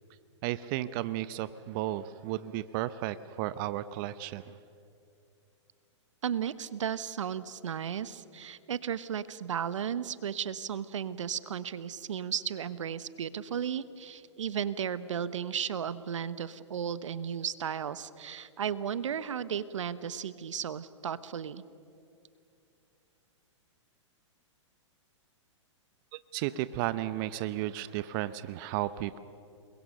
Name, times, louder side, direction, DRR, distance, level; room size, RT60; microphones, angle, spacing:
voice 1, 0.4-4.5 26.3-29.2, right 14 dB, 45° right, 15 dB, 0.8 m, -33 dB
voice 2, 6.2-21.6, right 8 dB, 75° right, 16 dB, 1.0 m, -34 dB
29.0 x 22.0 x 6.5 m, 2.6 s
hypercardioid pair, 120°, 16 cm